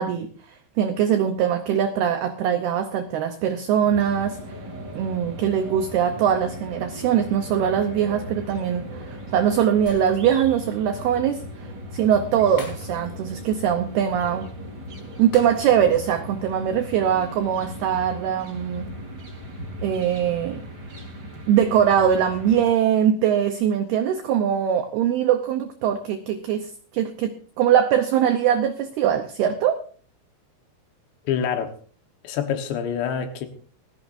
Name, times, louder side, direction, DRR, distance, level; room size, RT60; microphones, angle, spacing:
voice 1, 0.0-4.4 4.9-14.5 15.2-18.9 19.8-20.6 21.5-29.8, right 9 dB, 85° right, 6 dB, 2.2 m, -22 dB
sound 1, 3.8-22.6, equal, 30° right, 2.7 m, -38 dB
Shatter, 9.9-10.6 10.9-11.0 12.6-13.3 13.6-13.8 15.3-16.0 16.4-16.5, left 3 dB, 85° left, 6.7 m, -42 dB
voice 2, 31.3-31.7 32.2-33.5, left 8 dB, 70° left, 6 dB, 3.3 m, -26 dB
20.5 x 14.5 x 2.6 m, 0.43 s
omnidirectional pair, 5.7 m